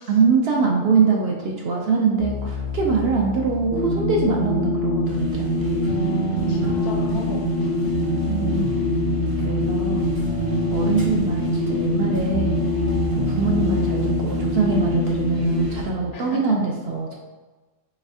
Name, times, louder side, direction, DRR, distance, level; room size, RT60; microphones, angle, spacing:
voice 1, 0.1-6.0 8.3-9.0 9.4-10.2 10.7-12.6 13.2-17.2, right 4 dB, 65° right, -1 dB, 0.7 m, -23 dB
sound 1, 2.2-16.1, left 3 dB, 85° right, 1.9 m, -31 dB
sound 2, 3.7-15.7, left 1 dB, 35° left, 0.5 m, -24 dB
sound 3, 5.0-15.8, left 1 dB, 25° right, 0.5 m, -37 dB
voice 2, 6.5-7.8 10.0-10.5 16.1-16.6, left 5 dB, 65° left, 1 dB, 0.9 m, -36 dB
4.0 x 3.4 x 2.6 m, 1.3 s
omnidirectional pair, 1.3 m